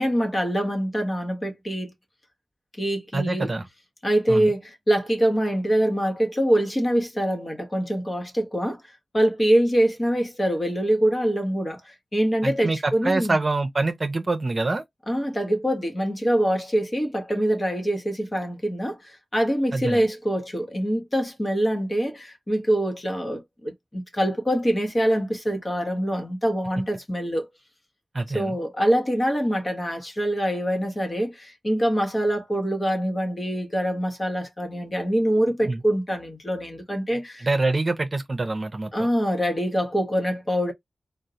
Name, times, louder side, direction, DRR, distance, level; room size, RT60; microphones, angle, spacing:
voice 1, 0.0-1.9 2.8-3.5 4.0-8.8 9.1-13.4 15.1-27.5 28.3-37.5 38.9-40.7, equal, 30° left, 1.2 m, -24 dB
voice 2, 3.1-3.7 4.3-4.5 12.4-14.8 19.7-20.1 28.1-28.5 35.6-35.8 37.4-38.9, right 2 dB, 40° right, 0.8 m, -25 dB
3.7 x 2.2 x 2.8 m
wide cardioid pair, 75°, 0 cm